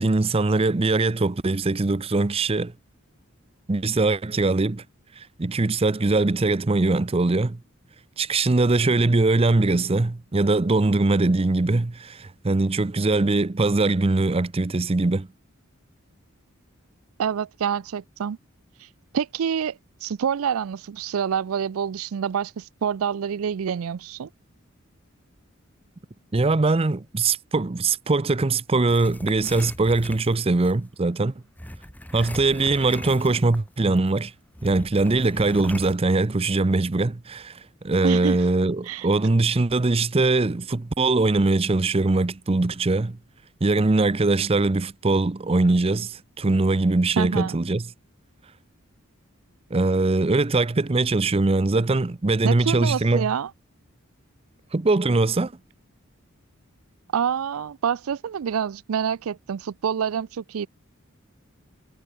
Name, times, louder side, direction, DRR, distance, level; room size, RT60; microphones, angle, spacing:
voice 1, 0.0-2.7 3.7-4.8 5.2-7.6 8.2-15.3 26.3-31.3 32.1-34.3 34.6-43.2 43.6-47.9 49.7-53.3 54.7-55.5, right 3 dB, 25° right, 0.6 m, -22 dB
voice 2, 17.2-18.4 19.1-24.3 38.0-38.4 38.9-39.1 47.2-47.6 52.4-53.5 57.1-60.7, right 7 dB, 80° right, 0.4 m, -27 dB
sound 1, 28.9-30.8 31.6-33.7 34.0-34.1 34.5-36.0, left 1 dB, 10° left, 2.5 m, -39 dB
head